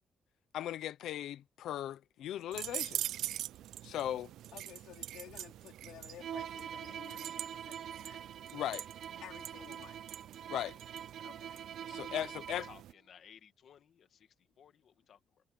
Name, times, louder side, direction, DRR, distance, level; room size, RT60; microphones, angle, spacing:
voice 1, 0.5-3.0 3.8-4.3 8.5-8.9 10.5-10.8 11.9-12.7, left 12 dB, 65° left, 0.9 m, -38 dB
sound 1, 2.5-12.9, right 13 dB, 70° right, 0.3 m, -44 dB
voice 2, 4.5-8.2 9.2-10.0 11.2-11.7, left 12 dB, 85° left, 4.2 m, -53 dB
Bowed string instrument, 6.2-12.9, right 9 dB, 50° right, 1.3 m, -45 dB
voice 3, 12.3-14.3 14.6-15.2, left 8 dB, 45° left, 1.8 m, -59 dB
cardioid pair, 180°, 0 cm